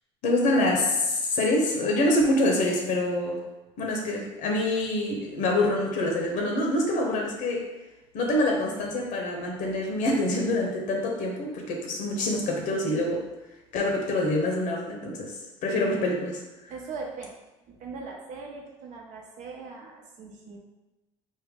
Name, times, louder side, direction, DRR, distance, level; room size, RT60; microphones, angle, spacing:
voice 1, 0.2-3.4 3.8-7.7 8.1-13.2 13.7-15.4 15.6-16.4, left 1 dB, 70° left, 0 dB, 0.8 m, -26 dB
voice 2, 16.7-17.3 17.7-20.6, right 4 dB, 65° right, 0 dB, 0.8 m, -40 dB
3.6 x 2.1 x 3.6 m, 1.1 s
supercardioid pair, 75°, 14 cm